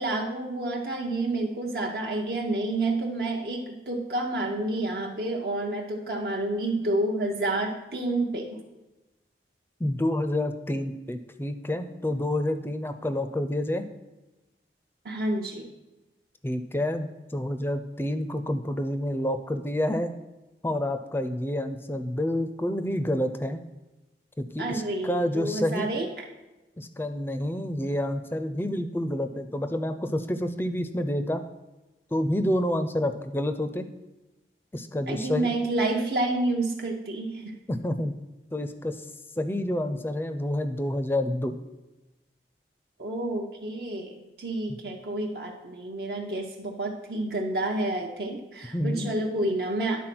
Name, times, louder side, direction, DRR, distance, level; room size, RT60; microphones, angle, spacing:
voice 1, 0.0-8.6 15.0-15.7 24.6-26.1 35.1-37.6 43.0-50.0, right 2 dB, 60° right, 0 dB, 0.8 m, -29 dB
voice 2, 9.8-13.8 16.4-20.1 20.6-23.6 24.4-25.9 26.8-31.4 32.1-33.9 34.7-35.5 37.7-38.2 38.5-39.0 39.4-41.6 48.7-49.1, left 1 dB, 15° left, 9 dB, 0.4 m, -28 dB
10.5 x 4.1 x 6.0 m, 1.1 s
head